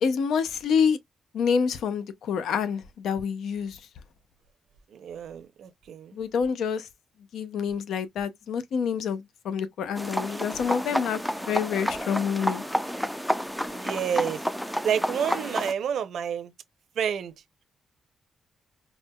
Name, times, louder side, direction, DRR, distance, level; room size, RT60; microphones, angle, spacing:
voice 1, 0.0-1.0 1.3-3.8 6.1-6.9 7.3-12.6, left 6 dB, 75° left, 0.5 m, -27 dB
voice 2, 4.9-6.2 13.7-14.4 14.8-16.5 17.0-17.3, right 8 dB, 65° right, 0.5 m, -29 dB
sound 1, 9.9-15.7, equal, ahead, 0.3 m, -30 dB
4.3 x 2.1 x 2.2 m
cardioid pair, 155°, 0 cm